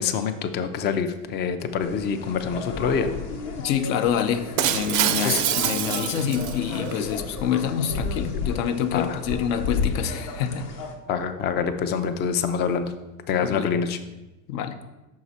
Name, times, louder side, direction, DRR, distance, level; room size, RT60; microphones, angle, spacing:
voice 1, 0.0-3.1 5.2-5.3 8.9-9.2 11.1-12.9 13.3-14.0, left 6 dB, 25° left, 8 dB, 0.4 m, -26 dB
sound 1, 1.8-10.9, left 4 dB, 85° left, 1.1 m, -32 dB
voice 2, 3.6-10.7 13.4-13.8 14.5-14.8, left 8 dB, 60° left, 7 dB, 0.7 m, -27 dB
Shatter, 4.6-7.0, right 11 dB, 45° right, 0.5 m, -25 dB
6.2 x 4.7 x 4.1 m, 1.1 s
hypercardioid pair, 100°, 44 cm